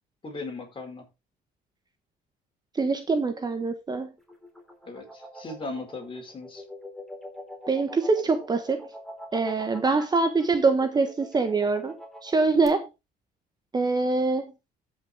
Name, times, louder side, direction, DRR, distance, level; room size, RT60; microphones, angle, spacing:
voice 1, 0.2-1.1 4.8-6.6, left 3 dB, 30° left, 4.6 m, -38 dB
voice 2, 2.7-4.1 7.7-8.8 9.3-11.9 12.2-12.8 13.7-14.5, right 3 dB, 25° right, 1.4 m, -24 dB
sound 1, 4.2-12.7, equal, ahead, 3.8 m, -44 dB
14.5 x 6.2 x 3.7 m
cardioid pair, 110°, 17 cm